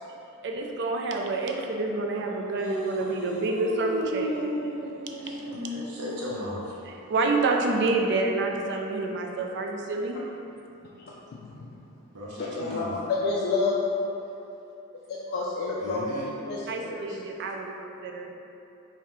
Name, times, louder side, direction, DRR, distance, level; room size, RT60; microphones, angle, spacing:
voice 1, 0.4-4.6 6.9-10.2 16.7-18.3, right 3 dB, 55° right, 1 dB, 0.4 m, -28 dB
voice 2, 2.3-6.7 12.1-12.9 15.8-16.3, equal, 85° right, -6 dB, 0.9 m, -34 dB
voice 3, 11.3-11.7 12.5-13.8 15.1-16.0 16.4-17.2, left 4 dB, 45° left, -5 dB, 0.3 m, -29 dB
5.7 x 2.2 x 3.1 m, 2.9 s
head